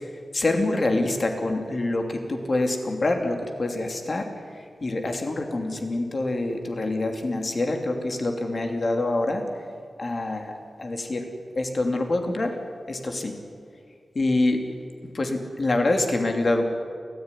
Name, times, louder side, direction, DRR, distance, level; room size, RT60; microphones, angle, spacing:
voice 1, 0.0-9.4 10.0-10.5 10.8-11.3 11.5-12.6 12.9-13.4 14.1-14.6 15.0-16.6, left 2 dB, 45° left, 4 dB, 2.9 m, -26 dB
29.5 x 14.5 x 10.0 m, 2.2 s
wide cardioid pair, 130°, 0 cm